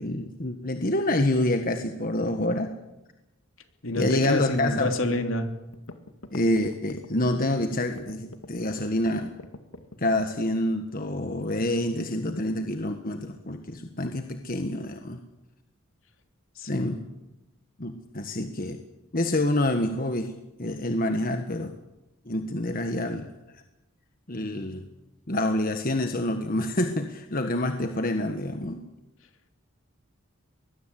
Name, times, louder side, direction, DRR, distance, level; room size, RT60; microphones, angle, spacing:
voice 1, 0.0-2.7 4.0-4.9 6.3-9.3 10.0-15.2 16.7-17.0 17.8-18.8 19.1-20.3 20.6-21.7 22.2-23.3 24.3-24.8 25.3-28.8, left 1 dB, 40° left, 6 dB, 1.4 m, -27 dB
voice 2, 3.8-5.5 16.5-16.9, left 1 dB, 70° left, 6 dB, 3.2 m, -27 dB
sound 1, 5.7-10.4, left 2 dB, 85° left, 2.0 m, -43 dB
23.5 x 21.0 x 8.3 m, 0.97 s
head